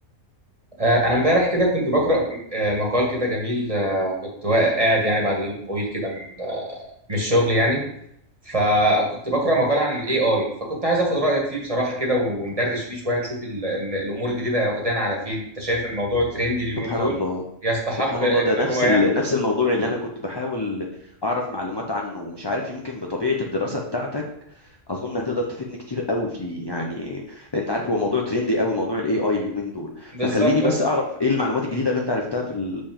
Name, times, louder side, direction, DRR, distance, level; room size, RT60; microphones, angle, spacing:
voice 1, 0.8-4.1 4.4-6.8 7.1-7.8 8.4-17.1 17.6-19.0 30.1-30.7, equal, 25° right, -2 dB, 1.7 m, -23 dB
voice 2, 16.8-17.4 17.9-20.9 21.2-24.2 24.9-32.8, left 2 dB, 30° left, -1 dB, 0.5 m, -25 dB
6.9 x 5.1 x 3.7 m, 0.72 s
omnidirectional pair, 1.5 m